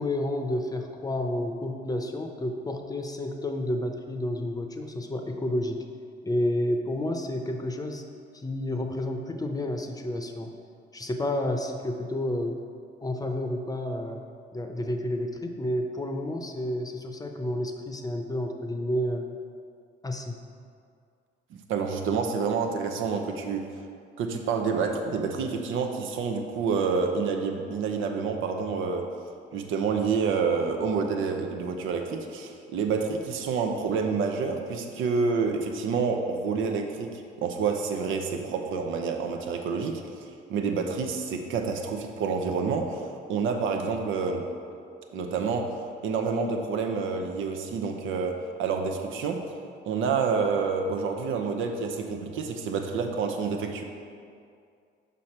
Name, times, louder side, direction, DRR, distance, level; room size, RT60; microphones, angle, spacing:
voice 1, 0.0-5.8 6.2-8.1 8.3-10.5 10.9-12.6 13.0-14.2 14.5-19.2 20.0-20.4, left 1 dB, 20° left, 4 dB, 0.7 m, -30 dB
voice 2, 21.5-23.7 24.2-29.1 29.5-40.0 40.5-44.5 45.1-45.8 46.0-49.5 49.8-53.8, right 5 dB, 85° right, 4 dB, 0.7 m, -28 dB
6.3 x 5.3 x 4.3 m, 2.3 s
cardioid pair, 90°, 20 cm